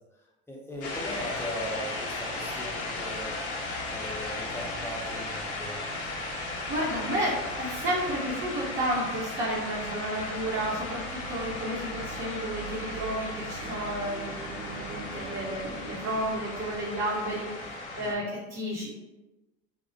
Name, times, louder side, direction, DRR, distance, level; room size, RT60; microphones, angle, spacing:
voice 1, 0.5-3.4 3.9-5.8 18.0-18.2, left 1 dB, 5° left, -2 dB, 0.5 m, -38 dB
sound 1, 0.7-17.0, right 5 dB, 60° right, 0.6 m, -47 dB
sound 2, 0.8-18.1, left 2 dB, 45° left, 0.7 m, -36 dB
voice 2, 6.0-6.3 6.7-18.9, right 1 dB, 35° right, -9 dB, 1.0 m, -32 dB
2.3 x 2.1 x 2.6 m, 1.1 s
hypercardioid pair, 85°, 33 cm